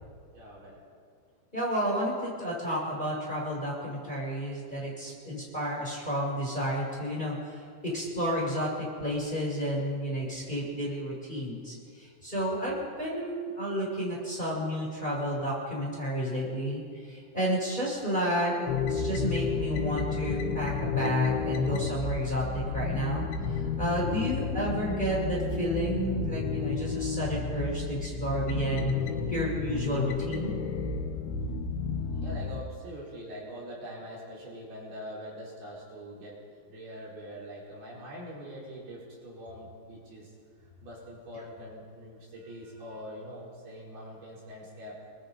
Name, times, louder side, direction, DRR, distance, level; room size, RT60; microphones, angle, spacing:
voice 1, 0.3-0.8 32.2-36.4 36.7-40.3 40.8-45.0, equal, 55° right, -5 dB, 6.9 m, -43 dB
voice 2, 1.5-28.9 29.3-30.5, equal, 10° left, -4 dB, 6.3 m, -31 dB
sound 1, 18.7-32.6, left 5 dB, 85° left, 3.7 m, -31 dB
29.5 x 22.5 x 5.4 m, 2.2 s
omnidirectional pair, 5.3 m